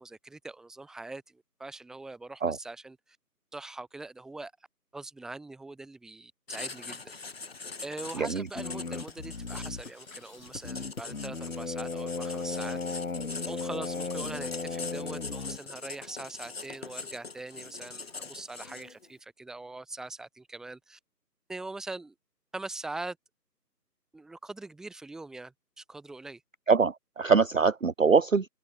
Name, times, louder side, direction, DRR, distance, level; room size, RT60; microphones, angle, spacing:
voice 1, 0.0-3.2 3.5-4.5 4.9-7.1 7.8-13.0 13.5-21.0 21.5-22.1 22.5-23.2 24.1-26.4, right 2 dB, ahead, 4.9 m, -42 dB
Writing, 6.5-19.1, left 4 dB, 35° left, 3.0 m, -42 dB
sound 1, 8.5-15.6, left 4 dB, 55° left, 2.0 m, -36 dB
voice 2, 26.7-28.5, right 5 dB, 50° right, 0.6 m, -23 dB
figure-of-eight pair, 165°, 50 cm